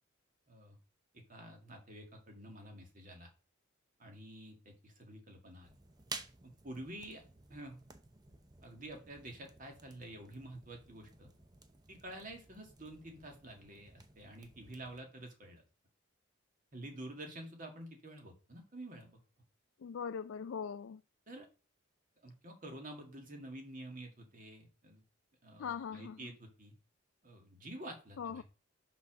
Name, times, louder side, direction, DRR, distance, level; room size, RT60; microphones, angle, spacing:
voice 1, 1.1-3.3 4.0-5.7 6.4-7.8 8.6-11.3 11.9-15.6 16.7-19.2 21.3-21.5 22.2-25.0 25.4-26.7 27.2-28.4, right 1 dB, 40° right, 2.1 m, -49 dB
sound 1, 5.6-15.0, right 3 dB, 20° right, 0.7 m, -53 dB
voice 2, 19.8-21.0 25.6-26.3 28.2-28.4, left 7 dB, 65° left, 0.3 m, -41 dB
6.1 x 5.8 x 6.2 m
head